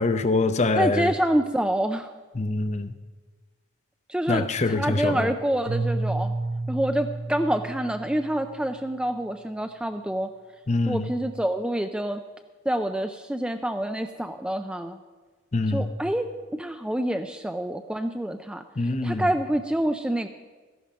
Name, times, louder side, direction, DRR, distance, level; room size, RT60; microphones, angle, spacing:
voice 1, 0.0-1.1 2.3-2.9 4.3-5.3 10.7-11.1 15.5-15.9 18.8-19.3, left 3 dB, 35° left, 10 dB, 0.6 m, -24 dB
voice 2, 0.8-2.1 4.1-6.3 6.7-10.3 10.9-12.2 12.7-15.0 15.7-16.2 16.5-18.6 19.0-20.3, right 1 dB, 5° right, 7 dB, 0.3 m, -27 dB
Keyboard (musical), 5.6-8.8, right 2 dB, 80° right, 0.7 m, -31 dB
13.5 x 11.0 x 5.1 m, 1.3 s
head